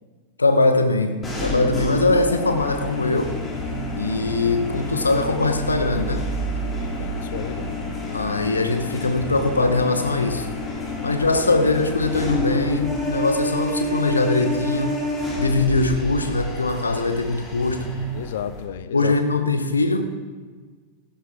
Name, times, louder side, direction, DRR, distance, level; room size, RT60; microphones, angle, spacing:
voice 1, 0.4-3.4 3.9-6.3 8.1-10.5 11.0-15.0 15.4-17.8 18.9-20.0, left 3 dB, 80° left, 7 dB, 1.1 m, -21 dB
sound 1, 1.2-18.6, left 1 dB, 20° left, 3.1 m, -29 dB
sound 2, 3.5-10.6 10.9-14.8 15.1-18.1, right 5 dB, 75° right, 2.7 m, -40 dB
voice 2, 7.0-7.9 11.3-11.5 18.1-19.2, left 10 dB, 60° left, 13 dB, 0.7 m, -32 dB
16.5 x 11.5 x 3.6 m, 1.5 s
figure-of-eight pair, 90°, 0 cm